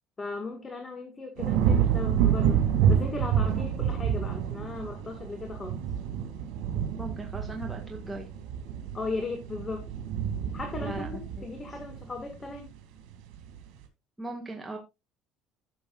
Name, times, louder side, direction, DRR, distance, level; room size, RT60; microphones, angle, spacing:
voice 1, 0.2-5.7 8.9-9.9 10.5-12.7, left 3 dB, 25° left, 3 dB, 1.8 m, -37 dB
sound 1, 1.4-12.7 13.1-13.6, right 8 dB, 80° right, 2.3 m, -28 dB
voice 2, 7.0-8.3 10.8-11.4 14.2-14.8, right 1 dB, 10° right, 0 dB, 1.6 m, -38 dB
14.0 x 7.0 x 2.4 m, 0.23 s
cardioid pair, 125°, 0 cm